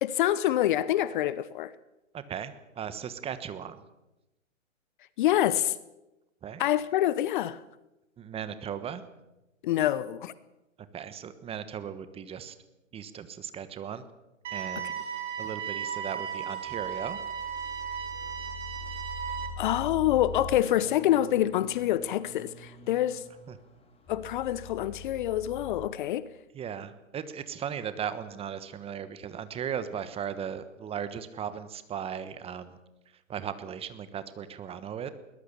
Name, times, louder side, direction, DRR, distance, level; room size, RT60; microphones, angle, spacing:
voice 1, 0.0-1.7 5.2-5.7 6.6-7.6 9.6-10.3 19.6-23.2 24.1-26.3, left 12 dB, 40° left, 0.8 m, -26 dB
voice 2, 2.1-3.8 6.4-6.6 8.2-9.0 10.9-12.6 12.9-14.0 14.5-14.9 15.4-17.2 23.5-23.6 26.5-32.8 33.3-35.1, right 8 dB, 15° right, 1.3 m, -37 dB
sound 1, 14.4-19.5, right 8 dB, 60° right, 6.2 m, -35 dB
sound 2, 16.4-25.9, left 3 dB, 15° left, 3.0 m, -43 dB
22.0 x 19.5 x 7.0 m
hypercardioid pair, 130°, 39 cm